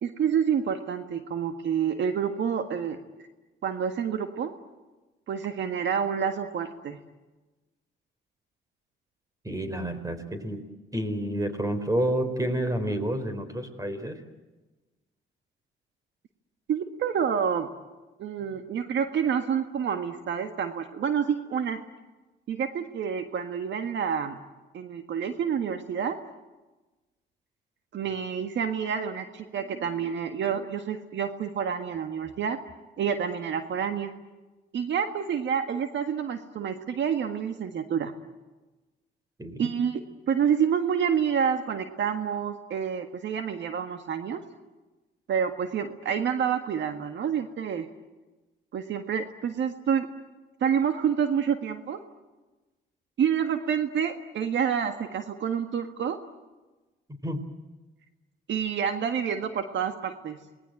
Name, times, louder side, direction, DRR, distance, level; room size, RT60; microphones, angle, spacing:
voice 1, 0.0-3.0 3.6-4.5 5.3-7.0 16.7-17.7 18.2-21.8 22.5-24.4 24.7-26.2 27.9-32.6 33.0-34.1 34.7-38.1 39.6-40.0 40.3-44.4 45.3-47.9 48.7-50.1 50.6-52.0 53.2-56.2 58.5-60.4, right 7 dB, 65° right, 7 dB, 1.7 m, -28 dB
voice 2, 9.4-10.6 10.9-14.2 39.4-39.7 57.2-57.4, right 1 dB, 15° right, 10 dB, 4.3 m, -29 dB
28.0 x 20.5 x 9.1 m, 1.2 s
cardioid pair, 90°, 20 cm